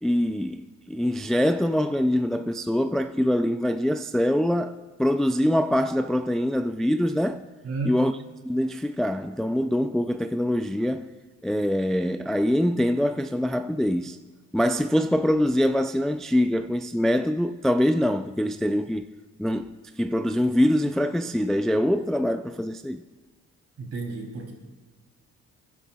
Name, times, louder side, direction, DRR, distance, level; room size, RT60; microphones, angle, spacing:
voice 1, 0.0-7.4 7.9-8.1 8.4-11.1 11.4-14.2 14.5-19.1 19.4-23.0, equal, ahead, 0.3 m, -24 dB
voice 2, 7.6-8.1 23.8-24.5, right 3 dB, 55° right, 3.1 m, -32 dB
28.0 x 11.0 x 2.3 m
cardioid pair, 90°, 30 cm